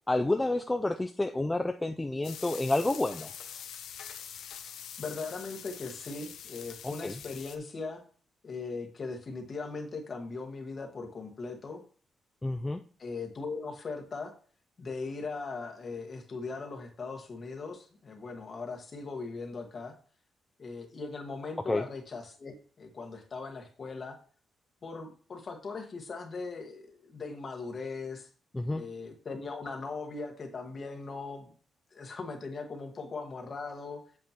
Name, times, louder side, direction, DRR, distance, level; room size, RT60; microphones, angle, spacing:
voice 1, 0.1-3.3 6.8-7.2 12.4-12.8 21.7-21.8 28.5-28.8, left 2 dB, 10° left, 6 dB, 0.4 m, -29 dB
sound 1, 2.2-7.6, left 9 dB, 80° left, 0.8 m, -44 dB
voice 2, 5.0-8.0 8.4-11.8 13.0-14.3 14.8-19.9 20.6-24.2 24.8-28.3 28.7-31.5 31.9-34.0, left 4 dB, 35° left, 3 dB, 1.6 m, -39 dB
8.3 x 7.4 x 2.9 m, 0.43 s
cardioid pair, 130°, 0 cm